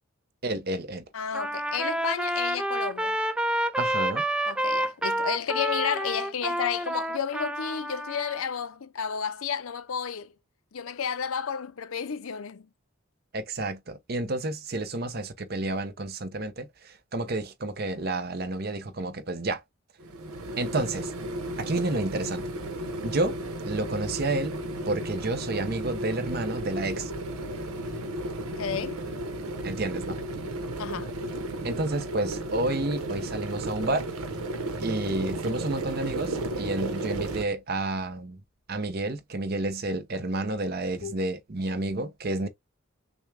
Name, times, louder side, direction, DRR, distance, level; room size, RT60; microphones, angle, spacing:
voice 1, 0.4-1.0 3.8-4.2 13.3-19.6 20.6-21.1 21.6-22.5 23.0-23.4 23.7-24.6 24.9-27.1 29.6-30.2 31.6-34.1 34.8-38.4 38.7-42.5, right 2 dB, 45° right, 0.8 m, -30 dB
voice 2, 1.1-3.2 4.5-10.3 10.7-12.7 28.6-29.0 30.8-31.1 41.0-41.1, left 7 dB, 75° left, 0.6 m, -32 dB
Trumpet, 1.3-8.4, right 1 dB, 5° right, 0.3 m, -29 dB
sound 1, 20.0-37.5, right 1 dB, 85° right, 1.0 m, -34 dB
6.2 x 2.3 x 3.3 m
head